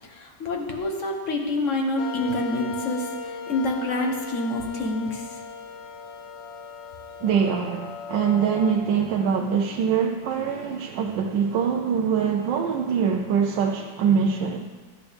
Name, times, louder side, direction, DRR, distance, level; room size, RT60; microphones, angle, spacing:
voice 1, 0.0-5.4, left 2 dB, 45° left, 2 dB, 1.2 m, -27 dB
sound 1, 2.0-8.8, left 5 dB, 80° left, 1.5 m, -37 dB
voice 2, 7.2-14.7, right 7 dB, 80° right, 2 dB, 1.3 m, -23 dB
11.0 x 9.1 x 3.5 m, 1.4 s
omnidirectional pair, 2.0 m